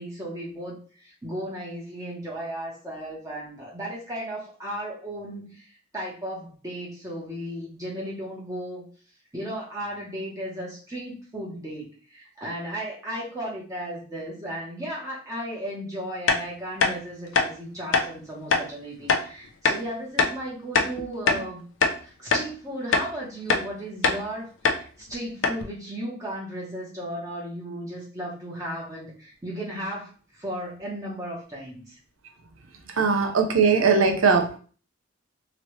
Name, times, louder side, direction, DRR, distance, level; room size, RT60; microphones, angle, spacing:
voice 1, 0.0-8.8 9.3-21.6 22.0-32.0, right 1 dB, 15° right, -4 dB, 0.8 m, -35 dB
sound 1, 16.3-16.4 16.8-16.9 17.3-17.5 17.9-18.1 18.5-18.7 19.1-19.2 19.7-19.8 20.2-20.4 20.8-21.5 21.8-22.0 22.3-22.5 22.9-23.1 23.5-23.7 24.0-24.2 24.7-24.8 25.1-25.2 25.4-25.6, left 4 dB, 65° left, 0.5 m, -22 dB
voice 2, 32.9-34.6, right 5 dB, 75° right, 4 dB, 0.7 m, -20 dB
3.0 x 2.8 x 3.1 m, 0.40 s
head